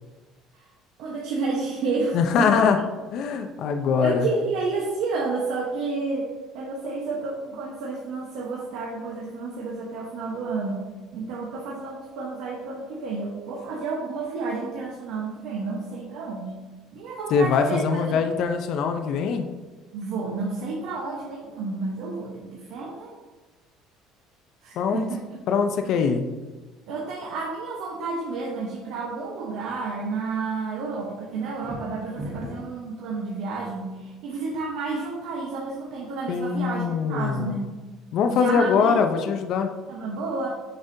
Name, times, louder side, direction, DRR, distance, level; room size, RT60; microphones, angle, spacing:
voice 1, 1.0-2.5 3.3-3.4 4.0-10.9 11.1-16.5 16.9-18.2 19.9-23.1 24.6-25.4 25.8-25.9 26.9-37.7 38.3-39.0 39.9-40.5, right 3 dB, 70° right, -2 dB, 1.0 m, -31 dB
voice 2, 2.1-2.8 3.1-4.3 17.3-19.5 24.8-25.0 25.5-26.3 36.3-37.6 38.1-39.7, left 6 dB, 55° left, 6 dB, 0.5 m, -22 dB
sound 1, 31.5-32.8, equal, 25° right, 1.3 m, -36 dB
6.9 x 5.3 x 2.7 m, 1.3 s
cardioid pair, 145°, 0 cm